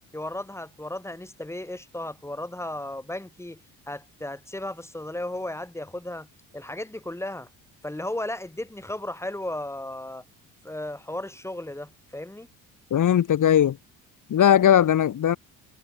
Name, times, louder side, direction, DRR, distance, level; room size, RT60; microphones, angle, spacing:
voice 1, 0.1-3.6 3.9-6.3 6.5-7.5 7.8-10.2 10.6-12.5, left 1 dB, 5° left, 5.6 m, -35 dB
voice 2, 12.9-13.8 14.3-15.4, left 10 dB, 50° left, 2.6 m, -19 dB
supercardioid pair, 85°, 38 cm